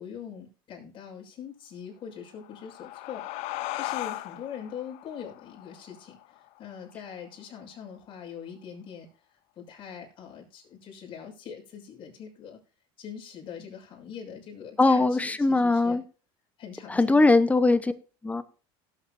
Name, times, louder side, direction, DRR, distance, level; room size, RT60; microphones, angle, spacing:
voice 1, 0.0-3.3 3.7-9.1 9.6-12.6 13.0-16.0 16.6-17.3, left 8 dB, 45° left, 6.2 m, -42 dB
sound 1, 2.3-7.4, left 17 dB, 65° left, 0.7 m, -38 dB
voice 2, 14.8-16.0 16.9-17.9 18.2-18.4, left 3 dB, 10° left, 0.9 m, -21 dB
17.5 x 8.5 x 2.7 m
supercardioid pair, 115°, 13 cm